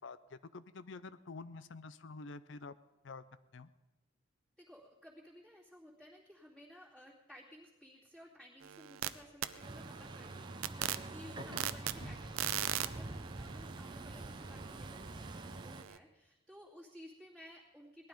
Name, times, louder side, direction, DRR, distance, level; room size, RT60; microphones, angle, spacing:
voice 1, 0.0-2.8 3.0-3.2 3.5-3.7 11.5-11.6 12.0-12.2, left 3 dB, 65° left, 14 dB, 0.5 m, -48 dB
voice 2, 4.6-18.1, equal, ahead, -10 dB, 2.5 m, -56 dB
sound 1, 8.6-9.1 9.4-16.0, right 10 dB, 90° right, 0.7 m, -41 dB
Truck, 9.6-15.8, right 2 dB, 20° right, 0.6 m, -46 dB
19.0 x 12.0 x 5.2 m, 1.1 s
head